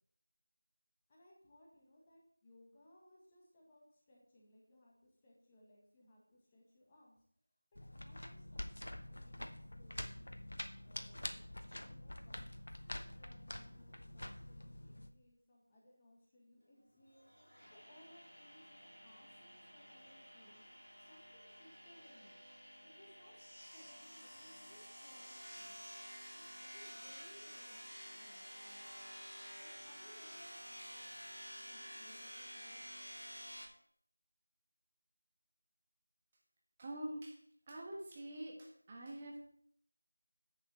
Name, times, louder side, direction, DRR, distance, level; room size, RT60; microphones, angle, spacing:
voice 1, 1.1-7.2 7.9-10.3 10.8-11.4 11.7-17.3 17.7-22.4 22.8-23.4 23.7-25.8 26.3-28.9 29.6-31.2 31.5-32.9, left 1 dB, 15° left, -3 dB, 1.7 m, -65 dB
sound 1, 7.7-15.1, left 1 dB, 55° left, 1.0 m, -47 dB
sound 2, 17.1-33.7, equal, 90° right, 3.7 m, -52 dB
voice 2, 36.8-37.4 37.7-39.4, right 1 dB, 20° right, -2 dB, 1.4 m, -45 dB
10.0 x 7.4 x 4.4 m, 0.68 s
figure-of-eight pair, 170°, 0 cm